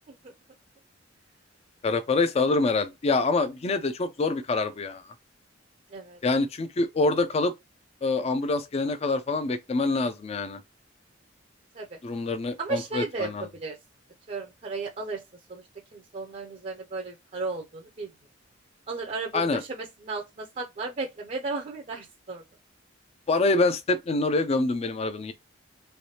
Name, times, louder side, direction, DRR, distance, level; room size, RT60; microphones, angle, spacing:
voice 1, 1.8-5.0 6.2-7.5 8.0-10.6 12.0-13.5 19.3-19.6 23.3-25.3, left 3 dB, 35° left, 0.4 m, -25 dB
voice 2, 12.6-13.8 14.3-15.2 15.5-15.6 15.9-18.1 18.9-22.4, right 3 dB, 40° right, 0.5 m, -34 dB
3.2 x 3.0 x 2.8 m
head